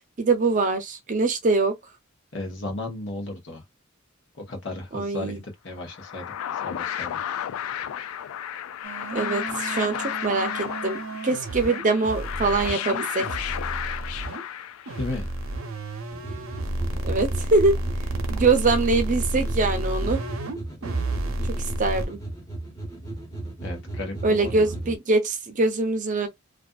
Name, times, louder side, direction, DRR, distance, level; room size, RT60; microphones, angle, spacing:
voice 1, 0.2-1.7 4.9-5.4 9.1-13.3 17.0-17.8 18.3-20.2 21.8-22.2 24.2-26.3, right 3 dB, 40° right, 0.6 m, -23 dB
voice 2, 2.3-3.6 4.5-7.2 15.0-15.3 23.6-24.7, left 2 dB, 60° left, 1.0 m, -34 dB
sound 1, 5.8-15.2, left 10 dB, 90° left, 0.3 m, -33 dB
sound 2, 8.8-14.4 14.9-20.6 20.8-22.1, right 1 dB, 85° right, 0.7 m, -31 dB
sound 3, 16.1-25.0, right 2 dB, 15° left, 1.1 m, -35 dB
2.5 x 2.4 x 2.3 m
head